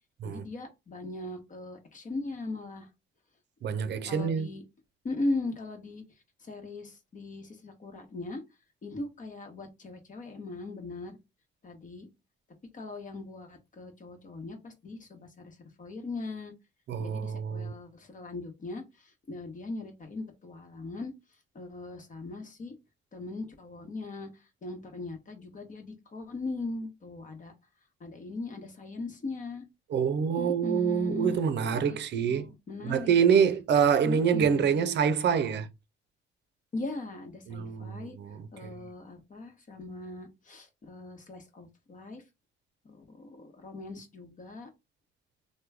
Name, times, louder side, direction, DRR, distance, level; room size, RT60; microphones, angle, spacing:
voice 1, 0.2-2.9 4.0-4.6 5.0-6.0 6.4-8.4 8.8-11.2 11.6-12.1 12.7-16.5 17.0-21.1 21.5-22.7 23.1-27.5 28.0-29.6 30.4-31.4 31.8-32.0 32.2-33.1 34.0-34.8 36.7-38.2 38.5-42.2 42.8-44.7, left 2 dB, 40° left, 1.0 m, -39 dB
voice 2, 3.6-4.5 16.9-17.7 29.9-32.5 32.8-35.7 37.5-38.7, right 7 dB, 60° right, 0.5 m, -26 dB
3.0 x 2.2 x 3.4 m
cardioid pair, 90°, 20 cm